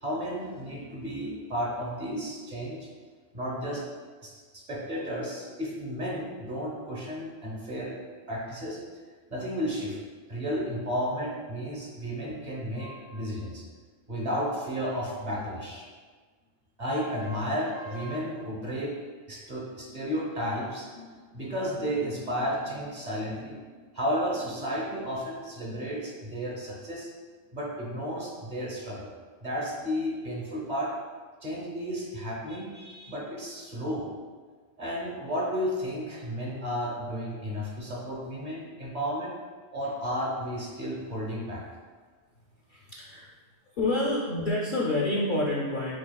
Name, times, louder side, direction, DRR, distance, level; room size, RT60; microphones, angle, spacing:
voice 1, 0.0-2.9 3.3-3.8 4.2-7.9 8.3-8.8 9.3-10.0 10.3-13.6 14.1-15.8 16.8-18.9 19.3-27.1 27.5-29.1 29.4-30.9 31.4-34.1 34.8-39.3 39.7-41.6, equal, 40° right, -4 dB, 0.9 m, -33 dB
voice 2, 42.7-43.3 43.7-46.0, left 2 dB, 60° left, -3 dB, 0.5 m, -28 dB
7.6 x 2.9 x 2.2 m, 1.5 s
omnidirectional pair, 1.3 m